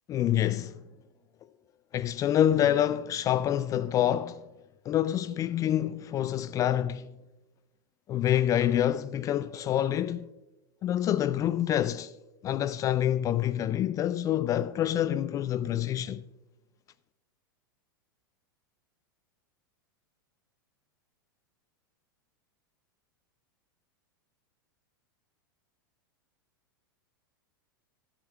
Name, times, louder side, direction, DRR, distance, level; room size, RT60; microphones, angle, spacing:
voice 1, 0.1-0.8 1.9-4.4 4.9-7.1 8.1-10.3 10.8-12.1 12.4-16.2, left 11 dB, 30° left, 0.3 m, -27 dB
15.5 x 8.9 x 2.3 m
hypercardioid pair, 95°, 12 cm